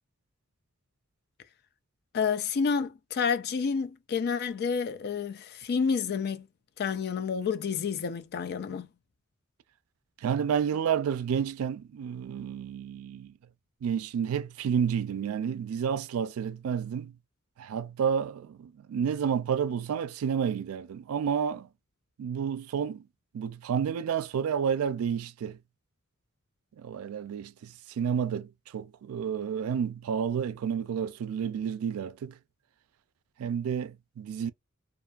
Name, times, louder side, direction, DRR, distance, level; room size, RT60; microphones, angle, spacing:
voice 1, 2.1-6.5 6.8-8.9, left 6 dB, 50° left, 0.3 m, -29 dB
voice 2, 10.2-13.3 13.8-17.1 17.6-21.7 22.2-23.1 23.3-25.6 26.8-32.4 33.4-34.5, right 7 dB, 90° right, 0.3 m, -30 dB
2.5 x 2.3 x 2.4 m
head